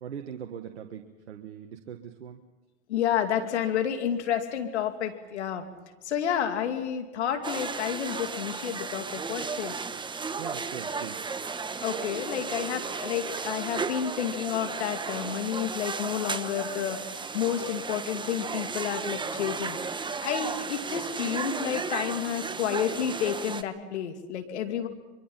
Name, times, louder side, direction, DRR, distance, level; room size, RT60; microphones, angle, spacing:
voice 1, 0.0-2.4 10.4-11.2, right 8 dB, 85° right, 4 dB, 1.6 m, -40 dB
voice 2, 2.9-5.7 6.0-9.8 11.8-19.8 20.2-24.9, left 9 dB, 80° left, 6 dB, 2.7 m, -30 dB
sound 1, 7.4-23.6, right 4 dB, 15° right, 1.1 m, -34 dB
24.5 x 24.0 x 5.7 m, 1.2 s
hypercardioid pair, 100°, 34 cm